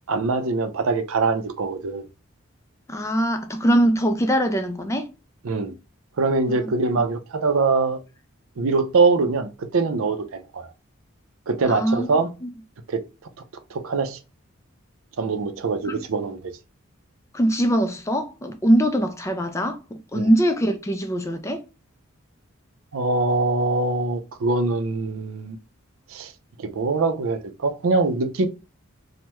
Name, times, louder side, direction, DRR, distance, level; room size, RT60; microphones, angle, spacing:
voice 1, 0.1-2.1 5.4-5.7 6.2-8.0 8.6-10.7 11.5-12.3 12.9-13.0 13.7-14.2 15.2-16.5 20.1-20.3 22.9-25.6 26.1-26.3 26.6-28.5, right 3 dB, 75° right, 0.5 m, -23 dB
voice 2, 2.9-5.1 6.5-6.7 11.7-12.1 15.8-16.0 17.3-21.6, right 1 dB, 15° left, 0.3 m, -22 dB
3.3 x 2.1 x 2.9 m
head